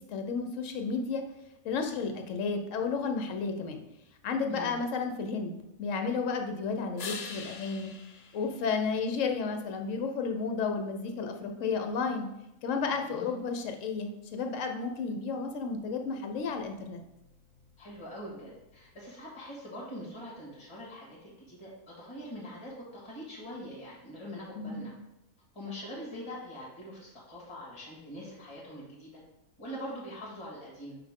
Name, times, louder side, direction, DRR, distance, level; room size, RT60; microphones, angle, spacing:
voice 1, 0.1-1.2 1.6-3.8 4.2-7.9 8.3-12.3 12.6-17.0 24.5-24.9, left 5 dB, 60° left, 5 dB, 1.0 m, -32 dB
sound 1, 7.0-9.5 15.3-19.3, left 5 dB, 90° left, 0.3 m, -47 dB
voice 2, 12.9-13.3 17.8-24.9 25.5-29.2 29.6-31.0, equal, 20° left, -5 dB, 1.8 m, -43 dB
5.9 x 4.8 x 3.6 m, 0.90 s
omnidirectional pair, 1.6 m